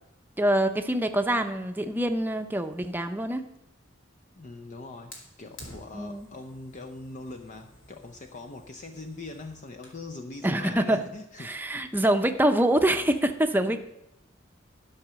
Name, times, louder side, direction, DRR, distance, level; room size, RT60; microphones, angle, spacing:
voice 1, 0.4-3.4 5.9-6.3 10.4-11.1 11.4-13.8, right 1 dB, 10° right, 7 dB, 0.7 m, -25 dB
voice 2, 4.4-11.8 13.7-13.8, left 2 dB, 40° left, 4 dB, 0.7 m, -42 dB
Fire, 5.1-10.1, left 1 dB, 75° left, 2.4 m, -51 dB
12.0 x 5.7 x 6.3 m, 0.85 s
head